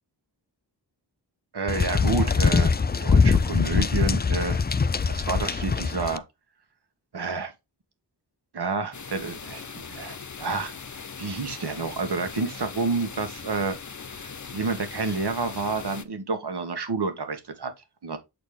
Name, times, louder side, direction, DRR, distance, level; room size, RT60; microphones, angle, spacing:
voice 1, 1.5-4.6 5.1-6.2 7.1-7.5 8.5-10.7 11.2-13.7 14.1-17.7 18.0-18.2, right 4 dB, 60° right, 1.6 m, -29 dB
sound 1, 1.7-6.2, left 5 dB, 25° left, 0.4 m, -22 dB
sound 2, 8.9-16.0, left 5 dB, 40° left, 0.8 m, -40 dB
8.2 x 4.3 x 3.5 m
wide cardioid pair, 105°, 44 cm